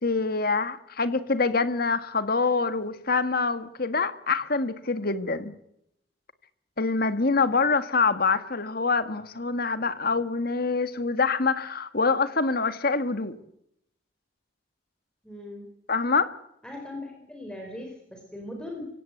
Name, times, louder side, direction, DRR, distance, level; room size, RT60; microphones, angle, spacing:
voice 1, 0.0-5.5 6.8-13.3 15.9-16.3, left 4 dB, 50° left, 11 dB, 1.8 m, -25 dB
voice 2, 15.2-15.7 16.6-19.0, left 1 dB, 5° left, 1 dB, 4.6 m, -39 dB
24.5 x 17.0 x 8.0 m, 0.76 s
head